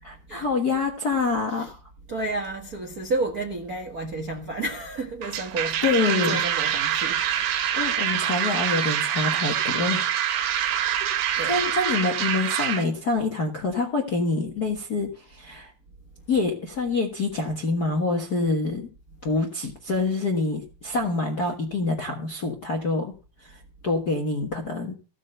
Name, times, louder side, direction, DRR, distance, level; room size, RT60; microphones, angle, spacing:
voice 1, 0.0-1.8 5.8-6.3 6.7-6.8 7.7-10.1 11.0-11.1 11.5-15.7 16.3-18.9 19.2-23.1 23.4-24.9, left 3 dB, 45° left, 1.2 m, -26 dB
voice 2, 2.1-7.7 11.3-11.7 16.2-16.3 19.1-19.2, right 2 dB, 45° right, 1.2 m, -32 dB
sound 1, 5.2-12.8, right 10 dB, 90° right, 2.8 m, -25 dB
15.5 x 6.3 x 6.5 m
omnidirectional pair, 4.0 m